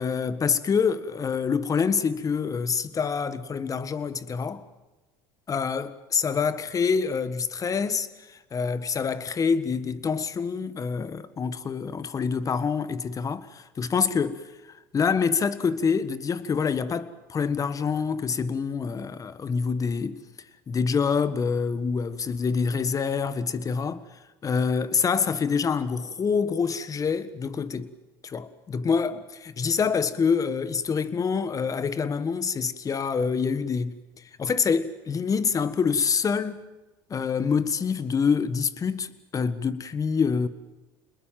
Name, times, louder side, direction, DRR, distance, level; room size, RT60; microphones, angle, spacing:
voice 1, 0.0-4.6 5.5-14.4 14.9-20.2 20.7-24.0 24.4-27.9 28.2-33.9 34.4-36.6 37.1-40.5, left 5 dB, 30° left, 1.6 m, -26 dB
28.0 x 21.0 x 7.6 m
supercardioid pair, 90°, 11 cm